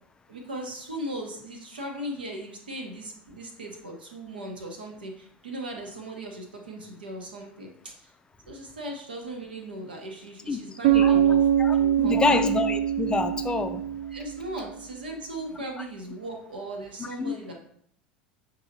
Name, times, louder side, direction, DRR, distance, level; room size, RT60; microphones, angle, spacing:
voice 1, 0.3-8.1 8.5-11.4 11.7-12.4 14.1-17.5, right 1 dB, 75° right, 2 dB, 0.9 m, -38 dB
Bass guitar, 10.8-14.7, right 10 dB, 50° right, 0.3 m, -23 dB
voice 2, 11.6-13.8 17.0-17.3, left 4 dB, 15° left, 8 dB, 0.4 m, -27 dB
6.5 x 2.7 x 2.8 m, 0.66 s
figure-of-eight pair, 75°, 5 cm